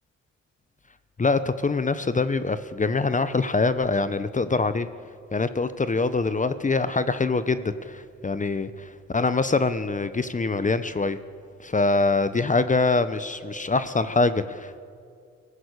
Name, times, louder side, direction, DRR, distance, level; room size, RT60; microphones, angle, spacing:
voice 1, 1.2-4.9 5.3-11.2 11.6-14.8, left 3 dB, 25° left, 13 dB, 1.0 m, -24 dB
22.0 x 15.0 x 8.4 m, 2.3 s
supercardioid pair, 60°, 30 cm